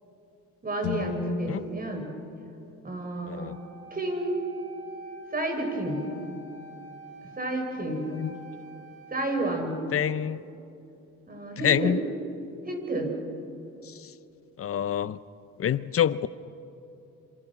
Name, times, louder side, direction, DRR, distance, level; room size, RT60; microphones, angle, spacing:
voice 1, 0.6-2.1 2.8-3.6 3.9-4.4 5.3-6.0 7.4-8.0 9.1-9.8 11.2-12.0 12.7-13.1, right 1 dB, 30° right, 4 dB, 5.6 m, -30 dB
sound 1, 0.8-4.9, left 3 dB, 85° left, 3.0 m, -38 dB
voice 2, 3.3-3.6 8.1-8.3 9.9-10.4 11.6-12.0 13.9-14.1 14.6-15.2 15.6-16.3, left 9 dB, 50° left, 16 dB, 0.7 m, -26 dB
Wind instrument woodwind instrument, 3.3-9.3, right 2 dB, 55° right, 7.0 m, -47 dB
27.5 x 26.5 x 6.1 m, 2.8 s
cardioid pair, 90°, 30 cm